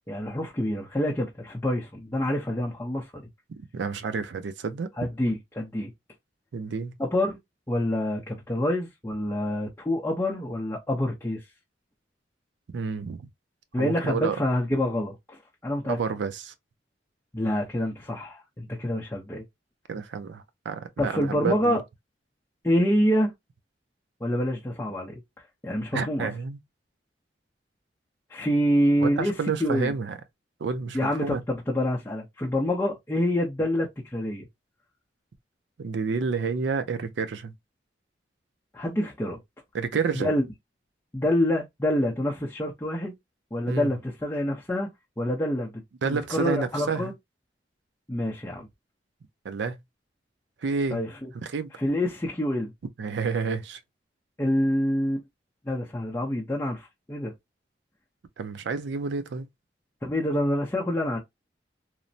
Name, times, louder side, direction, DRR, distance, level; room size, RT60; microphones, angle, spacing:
voice 1, 0.1-3.2 5.0-5.9 7.0-7.4 7.7-11.4 13.7-16.0 17.3-19.4 21.0-21.8 22.6-23.3 24.2-25.2 25.6-26.3 28.3-29.3 29.6-29.9 30.9-34.5 38.7-39.4 40.1-40.5 41.1-43.1 43.5-44.9 45.2-45.7 46.0-47.1 48.1-48.7 50.9-51.3 51.8-52.7 54.4-55.2 55.7-57.3 60.0-61.2, left 1 dB, 15° left, 0.5 m, -27 dB
voice 2, 3.7-4.9 6.5-6.9 12.7-13.3 13.8-14.4 15.9-16.5 19.9-21.8 25.9-26.6 29.0-30.2 30.6-31.4 35.8-37.5 39.7-40.4 43.7-43.9 46.0-47.1 49.4-49.8 50.6-51.0 51.4-51.7 53.0-53.8 58.4-59.5, right 5 dB, 80° right, 0.4 m, -29 dB
3.1 x 2.0 x 2.6 m
head